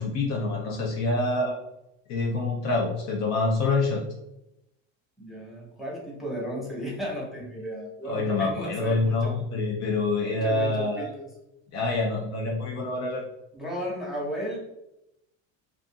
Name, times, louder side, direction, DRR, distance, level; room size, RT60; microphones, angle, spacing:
voice 1, 0.0-1.6 2.1-4.0 8.0-11.1 11.7-13.2, left 3 dB, 50° left, 0 dB, 0.6 m, -26 dB
voice 2, 5.2-9.3 9.8-11.3 13.5-14.6, equal, ahead, -5 dB, 0.8 m, -34 dB
2.5 x 2.5 x 2.6 m, 0.87 s
supercardioid pair, 115°, 36 cm